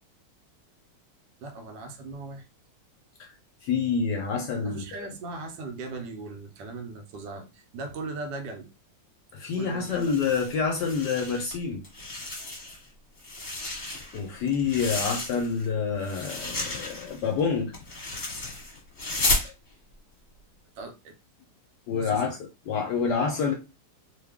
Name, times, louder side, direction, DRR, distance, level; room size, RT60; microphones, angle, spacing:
voice 1, 1.4-2.5 4.6-8.7 9.5-10.0 14.9-15.0 20.8-21.1 21.9-22.4, right 3 dB, 75° right, 1.4 m, -38 dB
voice 2, 3.6-5.1 9.3-11.8 14.1-17.7 19.4-19.5 21.9-22.4 22.7-23.5, left 5 dB, 70° left, 1.2 m, -27 dB
sound 1, 9.8-11.5 11.8-12.9 13.2-15.7 16.0-19.5, left 2 dB, 35° left, 1.5 m, -33 dB
3.2 x 2.3 x 3.5 m
omnidirectional pair, 2.0 m